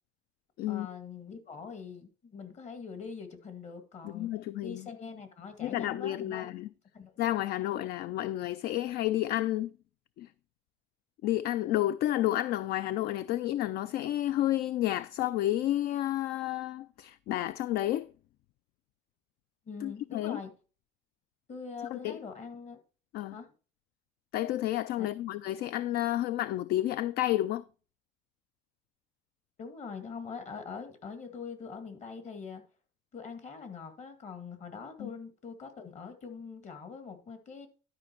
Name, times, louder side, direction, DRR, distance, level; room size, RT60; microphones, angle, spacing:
voice 1, 0.7-4.3 4.6-6.5 6.9-7.1 19.7-20.5 21.5-22.8 23.3-23.5 25.0-25.1 29.6-32.6 33.1-37.7, left 5 dB, 40° left, 2.1 m, -43 dB
voice 2, 4.0-4.9 5.6-6.7 7.2-9.7 10.2-10.3 11.2-18.1 19.8-20.4 21.9-22.2 23.1-23.4 24.3-27.6 35.0-35.1, left 14 dB, 60° left, 0.4 m, -31 dB
12.0 x 5.3 x 4.5 m
cardioid pair, 130°, 18 cm